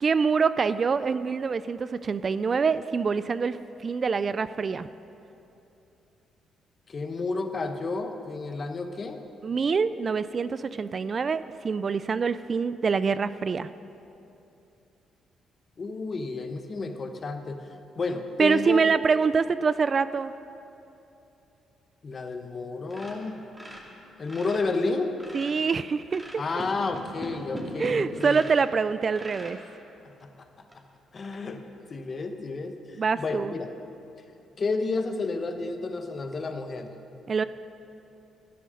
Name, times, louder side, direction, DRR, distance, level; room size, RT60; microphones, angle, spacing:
voice 1, 0.0-3.6 3.8-4.9 9.4-13.7 18.4-20.3 25.3-26.6 27.8-29.6 33.0-33.5 37.3-37.4, right 5 dB, 40° right, 14 dB, 0.3 m, -25 dB
voice 2, 6.9-9.2 15.8-17.7 17.9-18.9 22.0-23.4 24.2-25.1 26.4-28.4 30.0-30.5 31.1-31.6 31.9-33.7 34.6-36.9, left 3 dB, 40° left, 6 dB, 1.1 m, -31 dB
sound 1, 22.9-24.7 25.0-25.7 26.1-28.6 29.1-29.6 30.2-30.3 30.7-30.8 31.2-31.4, equal, 15° right, 2.5 m, -41 dB
13.0 x 10.0 x 6.4 m, 2.9 s
cardioid pair, 90°, 0 cm